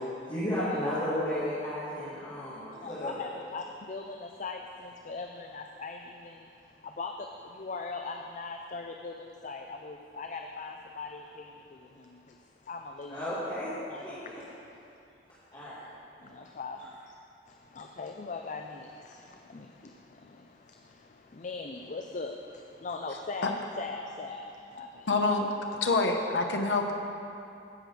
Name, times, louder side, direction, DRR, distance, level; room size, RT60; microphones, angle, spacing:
voice 1, 0.3-3.2 13.1-13.7 14.0-14.4 15.5-15.8, left 1 dB, 30° left, -13 dB, 2.5 m, -33 dB
voice 2, 2.8-4.6 5.1-6.0 7.0-7.1 7.6-9.1 9.4-11.2 12.7-13.1 13.9-14.0 16.6-16.8 17.8-18.8 21.4-22.3 22.8-24.4 24.8-24.9, left 4 dB, 45° left, 4 dB, 0.5 m, -38 dB
voice 3, 25.1-25.5 25.8-26.9, left 3 dB, 80° left, 3 dB, 0.8 m, -26 dB
16.0 x 6.3 x 5.0 m, 2.7 s
head